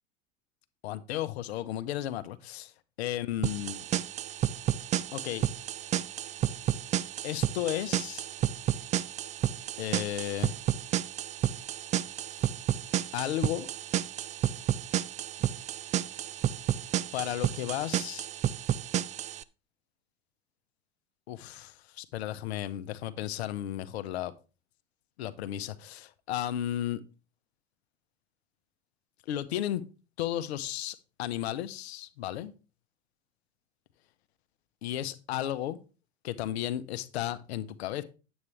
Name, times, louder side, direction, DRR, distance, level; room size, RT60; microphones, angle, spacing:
voice 1, 0.8-2.7 3.0-3.8 5.1-5.4 7.2-8.2 9.8-10.6 13.1-13.7 17.1-18.3 21.3-24.3 25.2-27.0 29.3-29.8 30.2-32.5 34.8-35.8 36.2-38.0, left 12 dB, 70° left, 0.8 m, -34 dB
sound 1, 3.4-19.4, right 11 dB, 20° right, 0.3 m, -31 dB
9.5 x 8.2 x 3.2 m
figure-of-eight pair, 75°, 33 cm